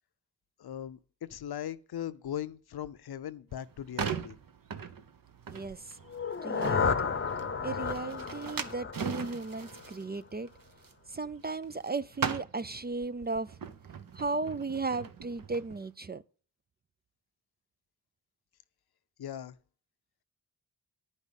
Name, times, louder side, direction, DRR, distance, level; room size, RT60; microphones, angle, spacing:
voice 1, 0.6-4.4 19.2-19.5, left 10 dB, 70° left, 0.7 m, -39 dB
sound 1, 3.5-11.9 12.1-15.8, right 6 dB, 55° right, 1.0 m, -40 dB
voice 2, 5.5-5.8 6.4-7.1 7.6-10.5 11.1-13.5 14.1-16.2, right 3 dB, 25° right, 0.4 m, -35 dB
sound 2, 6.1-10.0, left 5 dB, 30° left, 0.8 m, -33 dB
10.5 x 5.4 x 8.1 m
cardioid pair, 75°, 39 cm